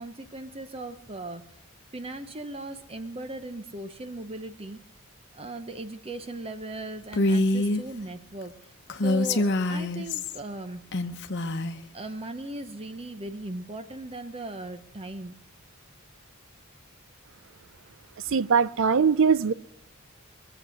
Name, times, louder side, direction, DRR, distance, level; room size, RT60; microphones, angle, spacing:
voice 1, 0.0-1.4 1.9-4.8 5.3-8.7 9.0-10.8 11.9-15.3, right 1 dB, 30° right, 0.7 m, -38 dB
Female speech woman speaking, 7.1-7.8 8.9-10.4 10.9-11.8, left 2 dB, 55° left, 0.9 m, -25 dB
voice 2, 18.3-19.5, right 6 dB, 65° right, 0.6 m, -21 dB
23.0 x 7.9 x 6.3 m
head